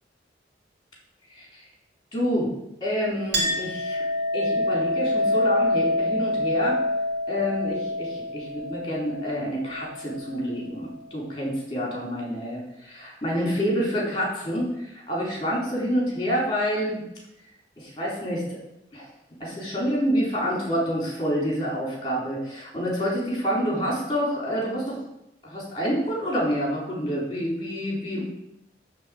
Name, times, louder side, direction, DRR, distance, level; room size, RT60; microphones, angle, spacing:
voice 1, 2.1-2.5 2.8-4.0 4.3-6.8 7.3-14.7 15.1-17.0 17.8-18.4 18.9-19.0 19.4-25.0 25.4-28.3, equal, 25° left, -3 dB, 4.1 m, -27 dB
Chink clink, 3.3-10.4, left 1 dB, 60° right, 2.3 m, -26 dB
11.5 x 4.1 x 7.9 m, 0.84 s
head